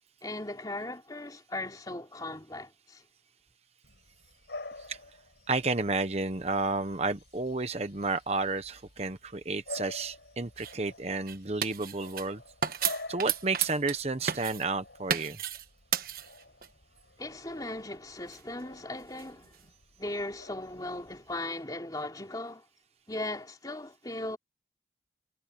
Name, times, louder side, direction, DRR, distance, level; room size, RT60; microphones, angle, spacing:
voice 1, 0.2-3.0 17.2-19.5 20.0-22.6 23.1-24.4, left 2 dB, 20° left, 3.2 m, -38 dB
Bark / Bird vocalization bird call bird song, 3.8-21.4, left 2 dB, 80° left, 4.4 m, -49 dB
voice 2, 5.5-12.4 13.1-15.4, right 3 dB, 35° right, 1.1 m, -31 dB
sound 1, 10.6-10.7 11.3-12.3 12.6-14.0 14.3-14.7 15.1-15.7 15.9-16.7 18.3-19.7, right 8 dB, 55° right, 1.3 m, -33 dB
head